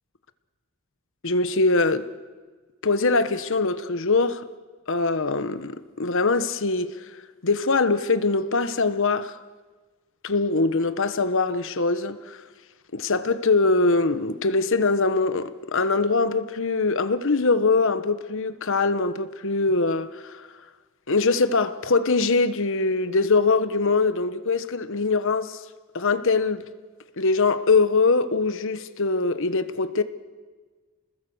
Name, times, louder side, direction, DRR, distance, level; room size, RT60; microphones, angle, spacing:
voice 1, 1.2-2.1 2.8-4.5 4.9-7.1 7.4-9.4 10.2-12.4 12.9-20.5 21.1-25.6 25.9-26.6 27.2-30.0, left 3 dB, 60° left, 1.1 m, -22 dB
29.5 x 20.0 x 7.9 m
head